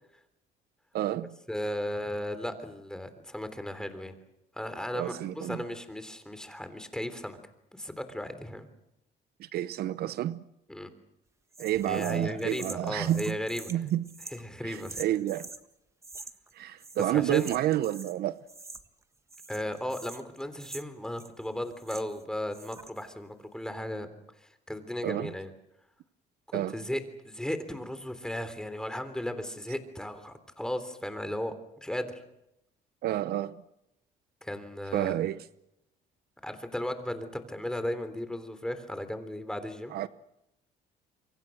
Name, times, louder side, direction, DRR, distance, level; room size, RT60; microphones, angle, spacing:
voice 1, 0.9-1.3 4.9-5.6 9.4-10.4 11.6-13.4 13.7-14.0 14.6-15.5 16.5-18.4 25.0-25.3 26.5-26.8 33.0-33.6 34.9-35.4 39.9-40.1, right 13 dB, 65° right, 0.8 m, -29 dB
voice 2, 1.5-4.1 4.5-7.4 7.7-8.7 10.7-10.9 11.8-13.7 14.3-15.0 17.1-17.5 19.5-24.1 24.4-25.5 26.5-31.5 31.8-32.2 34.4-35.2 36.4-39.9, left 1 dB, 5° left, 3.4 m, -35 dB
sound 1, 11.5-15.6 16.0-16.5 16.8-18.2 18.5-19.0 19.3-22.2 22.5-23.1, right 3 dB, 15° right, 1.5 m, -46 dB
27.5 x 24.5 x 6.4 m
cardioid pair, 110°, 17 cm